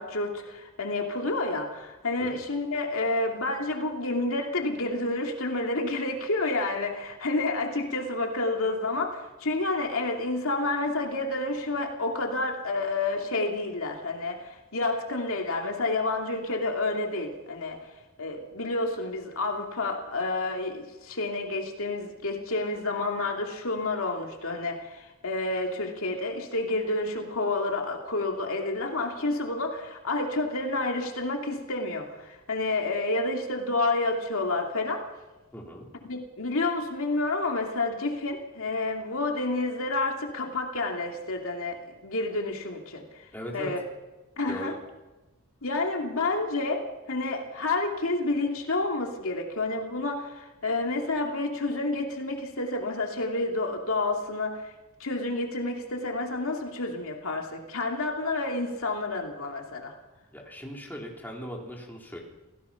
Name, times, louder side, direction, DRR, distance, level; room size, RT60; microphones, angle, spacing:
voice 1, 0.0-17.8 18.2-35.0 36.0-41.8 42.0-43.0 43.5-43.8 44.4-44.7 45.6-54.7 55.0-59.9, left 2 dB, 70° left, 2 dB, 2.8 m, -29 dB
voice 2, 35.5-35.9 43.3-43.7 44.5-44.8 60.3-62.2, equal, 10° left, -1 dB, 3.8 m, -39 dB
28.0 x 17.5 x 5.9 m, 1.1 s
head